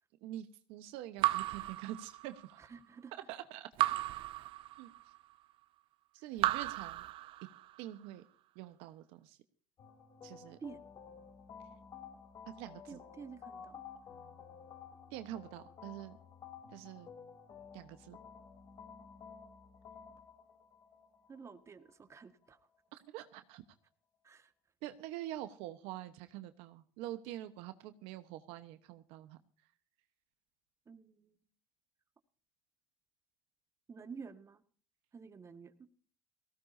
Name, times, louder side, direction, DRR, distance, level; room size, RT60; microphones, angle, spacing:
voice 1, 0.2-2.6 3.3-3.7 4.8-4.9 6.1-7.0 7.8-8.2 8.5-9.4 10.2-10.6 12.5-13.0 15.1-16.2 16.7-17.1 17.7-18.2 22.9-23.6 24.8-29.4, right 13 dB, 80° right, 10 dB, 1.1 m, -45 dB
Raindrop / Drip, 1.2-2.6 3.8-5.2 6.4-7.8, right 16 dB, 65° right, 0.6 m, -35 dB
voice 2, 2.7-3.1 10.6-10.8 12.9-13.8 21.3-22.6 24.2-24.5 30.9-31.4 33.9-34.6 35.1-35.9, right 5 dB, 30° right, 8 dB, 1.7 m, -50 dB
sound 1, 9.8-22.8, left 6 dB, 50° left, 3.7 m, -53 dB
19.0 x 16.5 x 2.7 m, 0.43 s
supercardioid pair, 95°, 10 cm